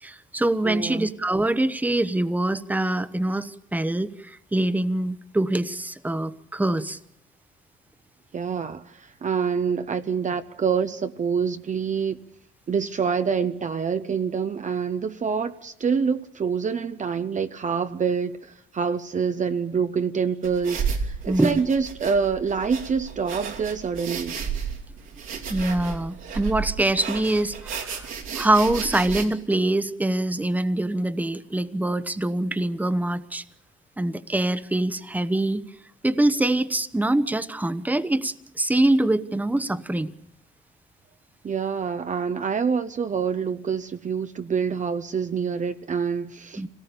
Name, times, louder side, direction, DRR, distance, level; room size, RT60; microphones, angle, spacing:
voice 1, 0.0-7.0 21.3-21.6 25.5-28.1 28.3-33.4 34.0-35.6 36.0-40.1 46.6-46.7, right 1 dB, 10° right, 1.0 m, -24 dB
voice 2, 0.6-1.1 8.3-12.2 12.7-24.4 41.4-46.7, right 6 dB, 40° right, 0.8 m, -26 dB
sound 1, 20.4-29.2, right 6 dB, 80° right, 2.9 m, -33 dB
25.5 x 18.0 x 7.0 m
cardioid pair, 90°, 20 cm